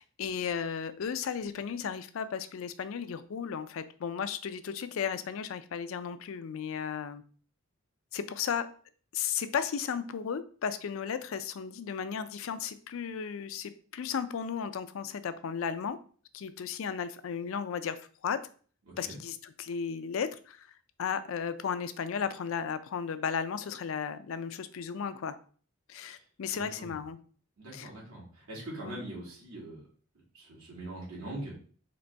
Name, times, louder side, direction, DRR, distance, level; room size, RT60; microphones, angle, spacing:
voice 1, 0.0-7.2 8.1-8.7 9.1-16.0 16.3-18.0 18.2-18.4 19.0-20.7 21.0-25.4 25.9-27.2 27.7-27.9 28.8-29.0, left 7 dB, 65° left, 12 dB, 0.4 m, -34 dB
voice 2, 18.9-19.2 26.0-26.1 26.5-27.0 27.6-29.8 30.3-31.5, right 1 dB, 85° right, -5 dB, 1.9 m, -42 dB
4.0 x 3.0 x 3.4 m, 0.43 s
head